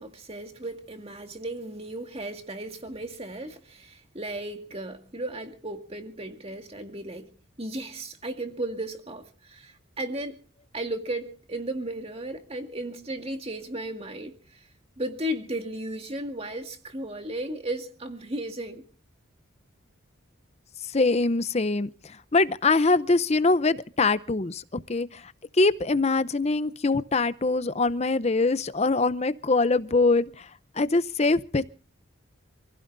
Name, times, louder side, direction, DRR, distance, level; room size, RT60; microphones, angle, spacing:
voice 1, 0.0-7.3 7.6-10.4 10.7-14.7 15.0-18.8, right 1 dB, 30° right, 2.0 m, -35 dB
voice 2, 20.9-25.3 25.6-30.5 30.8-31.7, left 3 dB, 30° left, 0.6 m, -23 dB
27.5 x 16.0 x 2.6 m
head